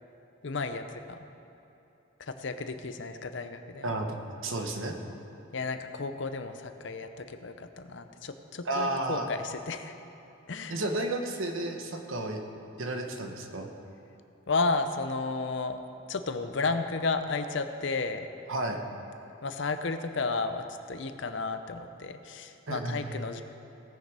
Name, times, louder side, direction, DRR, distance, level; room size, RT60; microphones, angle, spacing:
voice 1, 0.4-1.2 2.2-3.9 5.5-9.9 10.5-10.8 14.5-15.8 16.1-18.3 19.4-23.4, left 3 dB, 60° left, 9 dB, 0.6 m, -33 dB
voice 2, 3.8-4.2 4.4-5.0 8.6-9.3 10.7-12.4 12.8-13.7 18.5-18.8 22.7-23.1, right 2 dB, 75° right, 4 dB, 1.1 m, -32 dB
18.0 x 6.7 x 4.8 m, 3.0 s
head